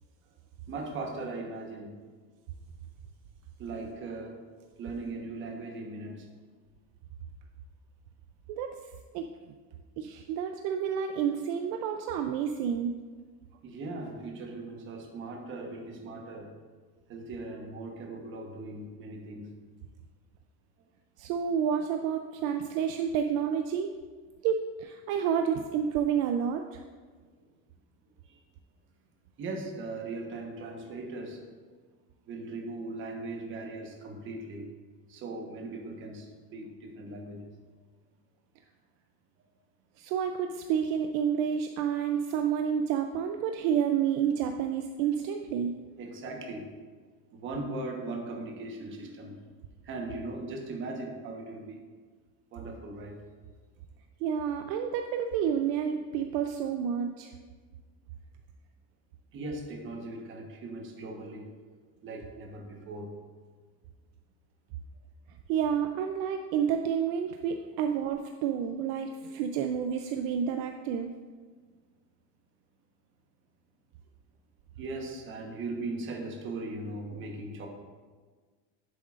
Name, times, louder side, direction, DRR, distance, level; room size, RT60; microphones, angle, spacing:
voice 1, 0.7-2.0 3.6-4.4 4.8-6.3 13.6-16.5 17.1-19.5 27.4-27.5 28.2-28.4 29.4-31.4 32.3-34.7 35.1-37.5 46.0-46.7 47.3-49.4 49.8-51.9 52.5-53.2 59.3-61.5 62.0-63.2 74.8-77.7, right 2 dB, 35° right, 2 dB, 1.2 m, -39 dB
voice 2, 9.1-9.5 10.0-12.9 21.2-24.0 24.4-26.8 40.0-45.7 54.2-57.3 65.5-71.1, right 8 dB, 65° right, 5 dB, 0.5 m, -29 dB
10.0 x 7.7 x 2.5 m, 1.5 s
cardioid pair, 170°, 33 cm